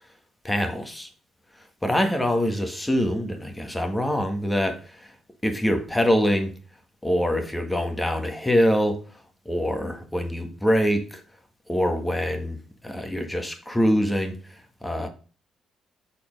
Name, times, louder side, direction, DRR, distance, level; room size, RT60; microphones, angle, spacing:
voice 1, 0.4-1.1 1.8-5.1 5.4-6.5 7.0-9.0 9.4-11.2 11.7-12.6 12.8-15.1, equal, 10° left, 1.5 m, -24 dB
6.7 x 4.3 x 5.1 m
cardioid pair, 90°, 0 cm